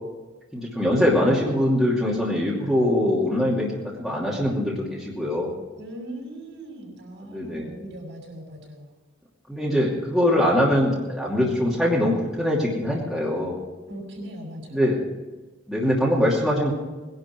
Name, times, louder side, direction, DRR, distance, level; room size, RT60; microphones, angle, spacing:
voice 1, 0.5-5.5 7.2-7.7 9.5-13.6 14.7-15.0 15.7-16.7, left 1 dB, ahead, -5 dB, 2.6 m, -22 dB
voice 2, 5.8-8.9 9.6-9.9 13.9-14.9, right 1 dB, 65° right, 0 dB, 6.1 m, -39 dB
20.5 x 11.0 x 4.6 m, 1.2 s
head